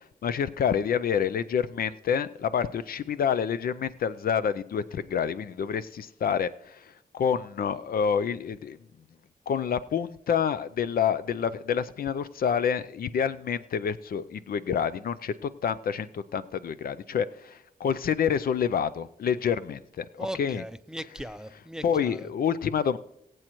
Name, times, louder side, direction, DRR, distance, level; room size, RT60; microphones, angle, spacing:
voice 1, 0.2-8.8 9.5-20.6 21.8-23.0, left 7 dB, 75° left, 14 dB, 0.5 m, -28 dB
voice 2, 20.2-22.3, right 1 dB, 5° right, 14 dB, 0.5 m, -38 dB
21.0 x 7.8 x 3.0 m, 0.81 s
cardioid pair, 60°, 15 cm